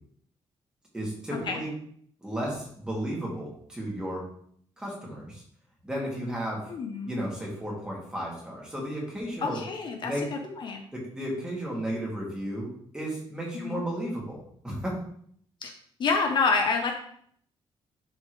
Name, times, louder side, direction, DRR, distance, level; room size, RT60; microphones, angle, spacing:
voice 1, 0.9-1.7 2.2-4.2 4.8-5.4 5.8-6.7 7.0-9.6 10.0-10.5 10.9-15.0, right 1 dB, 10° right, -4 dB, 2.2 m, -34 dB
voice 2, 6.7-7.2 9.4-10.8 13.6-13.8 15.6-15.7 16.0-16.9, left 4 dB, 50° left, 3 dB, 0.8 m, -28 dB
10.5 x 4.4 x 3.2 m, 0.63 s
wide cardioid pair, 170°, 10 cm